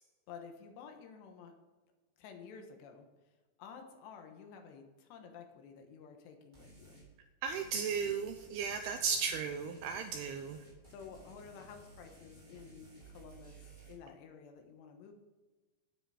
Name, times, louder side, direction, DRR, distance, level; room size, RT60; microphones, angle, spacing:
voice 1, 0.3-1.5 2.2-3.1 3.6-7.0 10.9-13.6 13.9-15.1, left 6 dB, 75° left, 4 dB, 3.3 m, -52 dB
sound 1, 6.5-7.1 7.5-13.9, right 2 dB, 25° right, 4.1 m, -56 dB
voice 2, 7.4-10.6, right 6 dB, 85° right, 7 dB, 2.3 m, -35 dB
10.0 x 8.8 x 4.9 m, 1.3 s
omnidirectional pair, 5.1 m